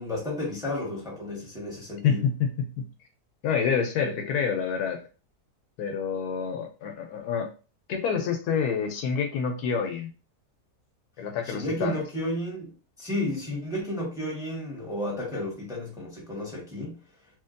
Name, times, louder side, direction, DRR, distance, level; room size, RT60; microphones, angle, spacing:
voice 1, 0.0-2.3 11.4-12.7 13.0-17.0, left 1 dB, ahead, 1.0 m, -32 dB
voice 2, 2.0-2.9 3.4-5.0 5.8-7.5 7.9-10.1 11.2-12.0, left 6 dB, 75° left, 1.1 m, -27 dB
3.0 x 2.8 x 2.5 m
omnidirectional pair, 1.7 m